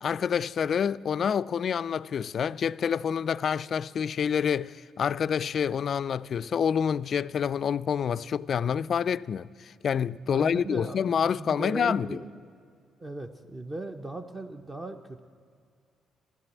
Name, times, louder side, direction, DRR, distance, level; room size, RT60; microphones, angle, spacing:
voice 1, 0.0-12.1, left 7 dB, 55° left, 0.3 m, -27 dB
voice 2, 10.2-11.1 11.4-12.4 13.0-15.2, right 2 dB, 20° right, 0.8 m, -37 dB
13.5 x 12.5 x 8.2 m
cardioid pair, 80°, 0 cm